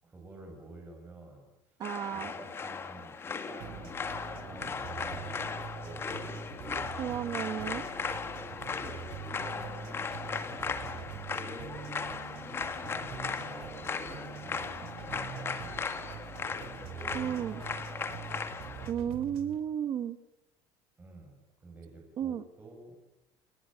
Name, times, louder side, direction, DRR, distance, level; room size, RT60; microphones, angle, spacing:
voice 1, 0.0-1.8 2.1-6.1 9.3-11.1 11.4-12.1 12.7-14.8 15.1-18.3 21.0-23.0, right 2 dB, 15° right, 1 dB, 6.9 m, -50 dB
sound 1, 1.8-18.9, left 5 dB, 25° left, 2.0 m, -37 dB
voice 2, 1.8-2.3 6.7-7.9 17.1-17.6 18.9-20.2 22.2-22.5, right 9 dB, 40° right, 12 dB, 1.2 m, -33 dB
sound 2, 3.6-19.6, right 8 dB, 60° right, 3.0 m, -44 dB
29.5 x 20.0 x 9.2 m, 0.90 s
cardioid pair, 155°, 11 cm